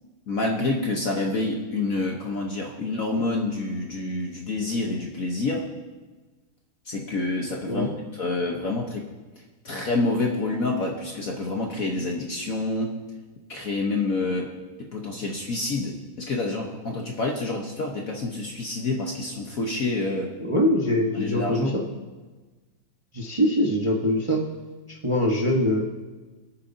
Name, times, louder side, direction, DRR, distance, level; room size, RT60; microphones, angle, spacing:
voice 1, 0.3-5.7 6.8-9.1 9.6-13.0 13.5-14.5 14.8-20.3 21.1-21.8, left 2 dB, 50° left, 0 dB, 1.3 m, -28 dB
voice 2, 20.4-21.8 23.1-24.4 25.0-25.8, equal, 20° right, -2 dB, 0.9 m, -23 dB
24.5 x 8.8 x 2.8 m, 1.3 s
omnidirectional pair, 2.4 m